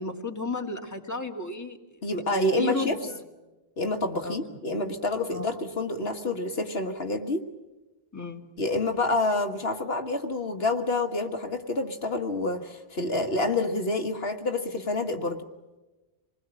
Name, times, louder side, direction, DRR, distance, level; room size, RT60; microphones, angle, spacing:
voice 1, 0.0-3.2 4.2-4.4 5.3-5.5 8.1-8.4, left 2 dB, 15° left, 3 dB, 2.0 m, -34 dB
voice 2, 2.0-3.0 3.8-7.4 8.6-15.4, left 2 dB, 65° left, 6 dB, 1.7 m, -28 dB
27.5 x 20.5 x 8.8 m, 1.1 s
omnidirectional pair, 1.1 m